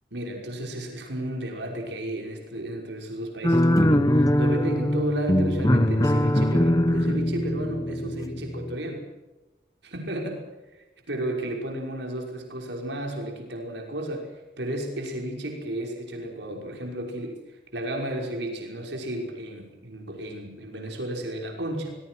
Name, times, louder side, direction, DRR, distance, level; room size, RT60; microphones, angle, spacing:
voice 1, 0.1-9.1 9.8-10.4 11.1-22.0, right 1 dB, 80° right, 2 dB, 5.8 m, -33 dB
sound 1, 3.4-8.8, left 1 dB, 20° left, 1.2 m, -22 dB
25.5 x 21.5 x 6.3 m, 1.1 s
head